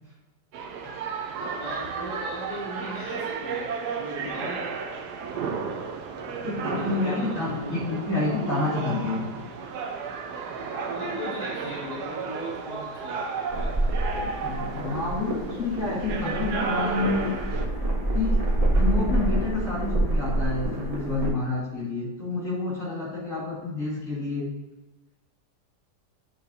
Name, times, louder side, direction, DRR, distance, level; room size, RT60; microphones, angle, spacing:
sound 1, 0.5-17.7, right 5 dB, 70° right, 1.2 m, -33 dB
voice 1, 1.6-4.7 6.6-7.8 10.9-13.8, left 1 dB, 25° left, -8 dB, 1.9 m, -38 dB
voice 2, 6.3-9.3 14.4-17.4 18.1-18.5 18.7-24.5, left 3 dB, 50° left, -7 dB, 2.3 m, -29 dB
sound 2, 13.5-21.3, right 1 dB, 25° right, 0.9 m, -27 dB
8.7 x 4.1 x 2.7 m, 1.1 s
omnidirectional pair, 1.8 m